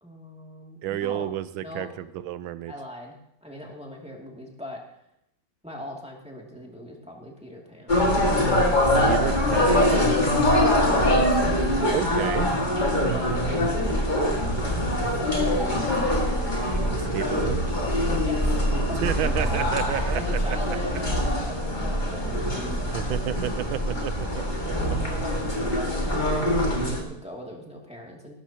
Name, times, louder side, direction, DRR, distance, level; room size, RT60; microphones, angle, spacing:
voice 1, 0.0-1.2 1.6-1.9 2.7-4.8 5.6-8.1 8.9-9.6 10.1-10.4 11.8-15.8 17.8-19.8 20.1-23.2 24.5-28.3, equal, 5° right, -2 dB, 2.3 m, -40 dB
voice 2, 0.8-2.7 9.1-9.9 11.9-12.5 16.9-17.6 18.9-20.6 22.9-25.0, right 12 dB, 85° right, 13 dB, 1.5 m, -31 dB
sound 1, 7.9-27.0, left 1 dB, 25° left, 2.0 m, -23 dB
17.0 x 13.0 x 2.9 m, 0.76 s
omnidirectional pair, 2.1 m